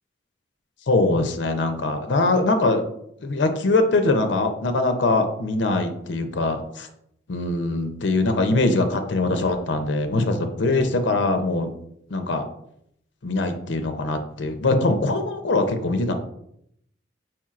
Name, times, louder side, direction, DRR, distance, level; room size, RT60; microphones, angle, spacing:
voice 1, 0.9-2.8 3.2-6.9 7.3-11.7 12.1-12.4 13.2-16.1, left 2 dB, 70° left, 7 dB, 0.6 m, -22 dB
4.6 x 4.3 x 2.4 m, 0.74 s
head